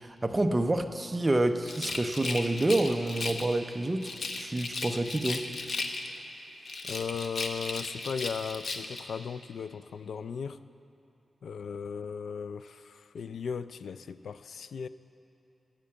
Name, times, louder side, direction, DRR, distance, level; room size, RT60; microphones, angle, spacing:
voice 1, 0.0-4.1 4.4-5.5, right 2 dB, 20° right, 7 dB, 0.5 m, -28 dB
Rattle, 1.6-3.6 4.0-6.3 6.6-9.1, left 3 dB, 50° left, 0.8 m, -36 dB
voice 2, 6.8-10.6 11.4-14.9, left 6 dB, 75° left, 14 dB, 0.3 m, -37 dB
10.5 x 8.4 x 8.4 m, 2.8 s
wide cardioid pair, 140°, 0 cm